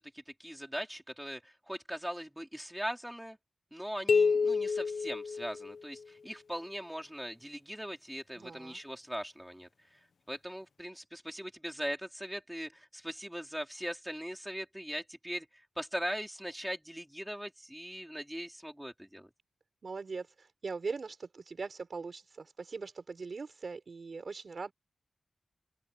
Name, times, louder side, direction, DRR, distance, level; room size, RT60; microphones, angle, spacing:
voice 1, 0.0-3.4 3.7-10.0 10.3-19.3, equal, 5° right, 4.7 m, -40 dB
sound 1, 4.1-6.0, left 5 dB, 70° left, 1.3 m, -28 dB
voice 2, 8.3-8.8 19.8-24.7, right 4 dB, 50° right, 4.5 m, -41 dB
open air
wide cardioid pair, 150°, 0 cm